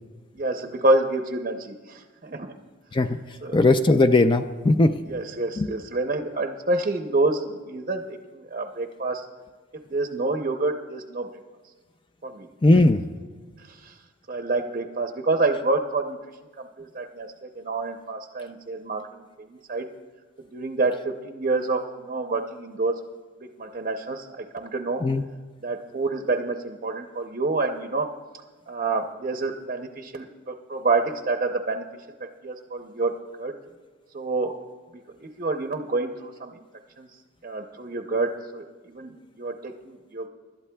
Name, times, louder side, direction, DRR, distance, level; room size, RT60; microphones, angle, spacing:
voice 1, 0.3-2.5 3.4-3.6 5.1-9.3 9.9-11.3 12.2-12.5 13.6-14.0 14.3-16.2 16.6-19.9 20.5-22.9 23.6-25.0 25.6-28.1 28.7-31.8 32.2-33.5 34.1-34.6 35.2-36.6 37.0-37.1 37.4-40.3, right 3 dB, 40° right, 4 dB, 0.6 m, -28 dB
voice 2, 3.5-5.0 5.6-5.7 12.6-13.0 25.0-25.2, left 2 dB, 25° left, 9 dB, 0.4 m, -18 dB
25.0 x 12.0 x 2.3 m, 1.4 s
head